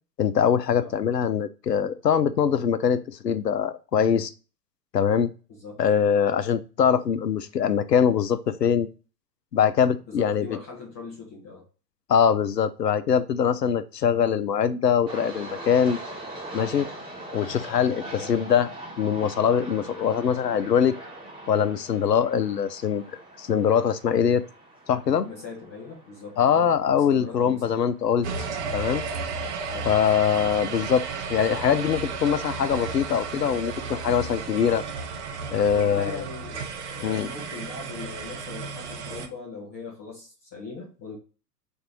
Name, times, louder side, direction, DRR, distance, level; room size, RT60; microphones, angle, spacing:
voice 1, 0.2-4.3 4.9-5.3 5.8-8.9 9.5-10.6 12.1-16.0 16.5-16.9 17.3-18.7 19.0-21.0 21.5-23.0 23.4-24.4 24.9-25.3 26.4-28.3 28.7-29.0 29.9-31.0 31.3-34.8 35.5-36.2 37.0-37.3, left 8 dB, 85° left, 12 dB, 0.6 m, -23 dB
voice 2, 5.5-5.8 10.1-11.6 18.0-18.3 25.2-27.7 28.6-28.8 29.6-29.9 35.7-41.2, left 4 dB, 10° left, -4 dB, 0.3 m, -40 dB
sound 1, 15.1-30.0, right 1 dB, 10° right, 1.0 m, -42 dB
sound 2, 28.2-39.3, right 5 dB, 45° right, 0.7 m, -33 dB
3.7 x 2.7 x 4.3 m, 0.34 s
figure-of-eight pair, 105°, 48 cm